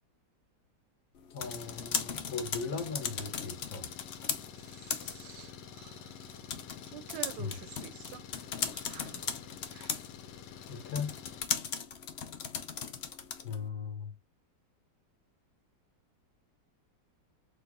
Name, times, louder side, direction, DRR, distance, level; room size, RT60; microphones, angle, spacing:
sound 1, 1.2-13.7, left 7 dB, 90° left, 0.5 m, -39 dB
voice 1, 1.3-3.9 7.4-7.5 10.7-11.2 13.4-14.1, left 5 dB, 50° left, 1.5 m, -38 dB
Engine, 1.4-11.4, left 8 dB, 70° left, 1.3 m, -49 dB
voice 2, 4.6-6.2 6.8-8.2 8.7-9.2 9.7-10.0, right 12 dB, 75° right, 1.1 m, -48 dB
4.5 x 2.6 x 3.6 m
omnidirectional pair, 2.0 m